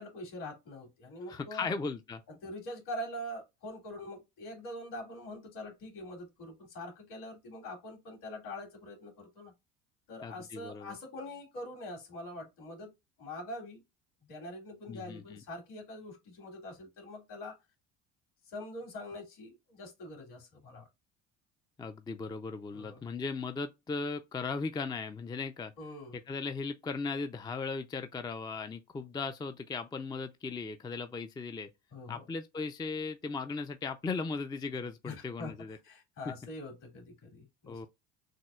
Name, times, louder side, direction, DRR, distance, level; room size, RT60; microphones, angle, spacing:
voice 1, 0.0-1.7 2.3-9.5 10.1-12.9 13.2-13.8 14.2-17.6 18.5-20.9 22.7-23.0 25.8-26.2 31.9-32.3 35.0-37.8, left 1 dB, 60° left, 2.6 m, -44 dB
voice 2, 1.3-2.2 10.2-10.9 14.9-15.4 21.8-25.7 26.3-31.7 32.1-35.8 37.7-37.9, left 4 dB, 10° left, 0.4 m, -37 dB
6.3 x 2.4 x 2.3 m
hypercardioid pair, 70°, 36 cm